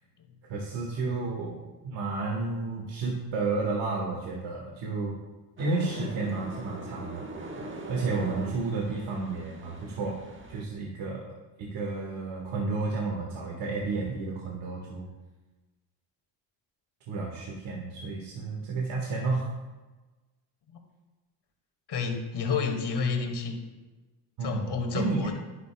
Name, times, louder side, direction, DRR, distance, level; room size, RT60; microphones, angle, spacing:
voice 1, 0.4-5.2 5.6-7.3 7.9-10.2 10.5-11.2 11.6-15.1 17.1-19.5 24.4-25.3, right 3 dB, 65° right, -1 dB, 1.8 m, -31 dB
sound 1, 5.6-10.6, right 2 dB, 25° right, 1.4 m, -41 dB
voice 2, 21.9-23.6 24.4-25.3, left 5 dB, 55° left, 3 dB, 2.1 m, -30 dB
10.5 x 10.0 x 2.3 m, 1.2 s
supercardioid pair, 70°, 49 cm